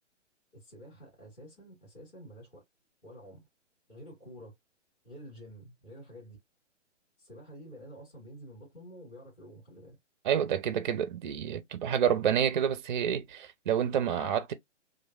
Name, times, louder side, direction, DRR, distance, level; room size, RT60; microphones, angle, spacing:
voice 1, 0.5-2.6 3.0-3.5 3.9-4.5 5.0-6.4 7.2-10.0, equal, 20° left, 1.7 m, -49 dB
voice 2, 10.2-14.5, right 9 dB, 40° right, 0.5 m, -28 dB
3.1 x 2.4 x 2.2 m
hypercardioid pair, 140°, 37 cm